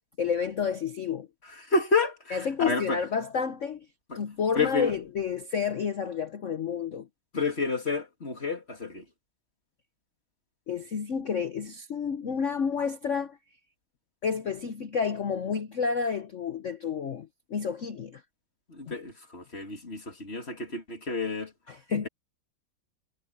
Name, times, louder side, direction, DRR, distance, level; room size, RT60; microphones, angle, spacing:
voice 1, 0.2-1.3 2.3-3.9 4.1-7.1 10.7-13.4 14.2-18.2 18.9-19.0 21.7-22.1, left 6 dB, 55° left, 0.9 m, -30 dB
voice 2, 1.4-3.0 4.1-4.2 4.5-5.0 7.3-9.0 18.7-21.5, left 3 dB, 30° left, 2.9 m, -30 dB
omnidirectional pair, 2.2 m